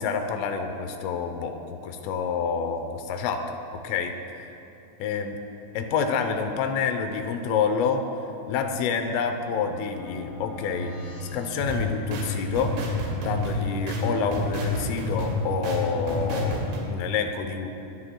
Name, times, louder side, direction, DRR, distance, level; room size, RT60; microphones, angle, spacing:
voice 1, 0.0-3.6 3.8-4.2 5.0-5.4 5.8-8.1 8.5-10.9 11.2-12.8 13.2-17.7, left 6 dB, 80° left, 6 dB, 3.3 m, -28 dB
sound 1, 9.1-12.5, equal, 50° left, 3.9 m, -41 dB
sound 2, 11.6-16.8, left 1 dB, 85° right, 4.8 m, -29 dB
22.5 x 17.5 x 2.3 m, 2.9 s
omnidirectional pair, 5.8 m